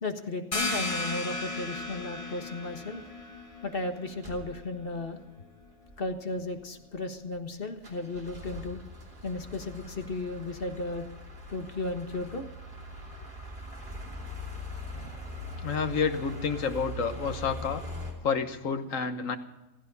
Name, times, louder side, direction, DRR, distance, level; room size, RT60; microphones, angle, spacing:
voice 1, 0.0-3.0 3.6-5.2 6.0-8.8 9.2-11.0 11.5-12.5, left 2 dB, 40° left, 6 dB, 1.6 m, -35 dB
sound 1, 0.5-5.9, left 2 dB, 25° left, 1.8 m, -36 dB
sound 2, 1.8-2.0 2.5-2.7 3.0-3.1 3.4-3.8 4.2-5.0 5.4-5.5 5.6-6.1 6.6-7.5 7.8-18.1, left 1 dB, 35° right, 3.2 m, -42 dB
voice 2, 15.6-17.8 18.2-19.4, left 5 dB, 70° left, 8 dB, 1.6 m, -29 dB
15.5 x 15.5 x 5.5 m, 1.1 s
omnidirectional pair, 1.4 m